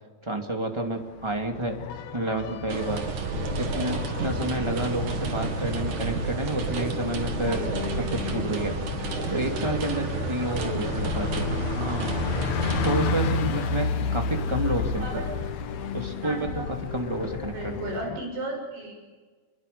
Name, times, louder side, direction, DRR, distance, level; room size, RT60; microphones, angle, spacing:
voice 1, 0.2-1.8 2.1-3.0 3.5-8.8 9.3-12.2 12.8-15.2 15.9-17.8, right 2 dB, 10° right, 3 dB, 1.3 m, -30 dB
Bus, 1.0-18.1, left 4 dB, 55° left, 2.4 m, -33 dB
sound 1, 1.7-18.2, left 10 dB, 75° left, 3.0 m, -37 dB
sound 2, 2.7-12.9, right 4 dB, 50° right, 3.3 m, -31 dB
voice 2, 10.6-10.9 15.0-15.3 16.2-16.6 17.5-18.9, right 2 dB, 70° right, 2 dB, 8.9 m, -34 dB
27.5 x 22.5 x 6.9 m, 1.4 s
omnidirectional pair, 4.8 m